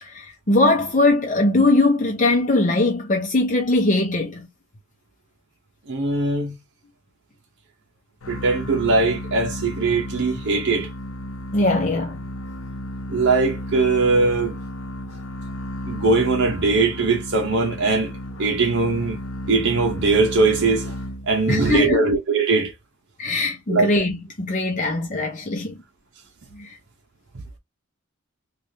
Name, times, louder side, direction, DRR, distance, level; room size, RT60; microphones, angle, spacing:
voice 1, 0.0-4.5 11.5-12.2 21.5-22.0 23.2-25.8 26.5-26.8, left 2 dB, 35° left, 0.7 m, -21 dB
voice 2, 5.9-6.5 8.3-10.9 13.1-14.6 15.9-19.2 19.5-20.9 21.3-22.7 23.7-23.9, right 3 dB, 55° right, 0.8 m, -20 dB
sound 1, 8.2-21.6, left 1 dB, 70° left, 0.7 m, -33 dB
3.4 x 2.5 x 2.7 m
head